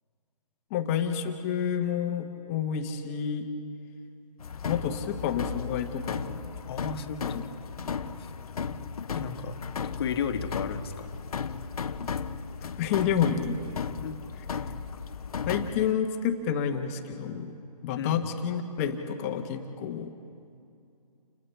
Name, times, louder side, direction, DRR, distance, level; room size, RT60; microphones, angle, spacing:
voice 1, 0.7-3.5 4.6-6.4 7.2-7.3 12.8-13.6 15.5-17.5 17.8-20.1, left 8 dB, 20° left, 5 dB, 1.2 m, -29 dB
sound 1, 4.4-15.9, left 6 dB, 60° left, 0.9 m, -35 dB
voice 2, 6.7-7.4 9.1-9.6 9.8-11.1 14.0-14.2 18.0-18.3, left 6 dB, 40° left, 6 dB, 1.4 m, -33 dB
29.5 x 29.5 x 3.4 m, 2.5 s
figure-of-eight pair, 150°, 21 cm